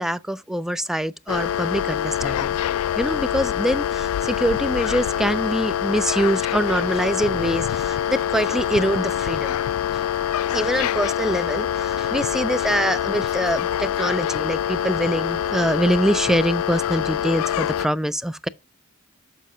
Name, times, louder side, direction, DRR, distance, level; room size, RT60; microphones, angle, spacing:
voice 1, 0.0-2.6 3.0-9.6 10.5-18.5, equal, ahead, 0.3 m, -24 dB
sound 1, 1.3-17.9, left 10 dB, 80° left, 0.3 m, -25 dB
7.2 x 6.5 x 2.7 m
head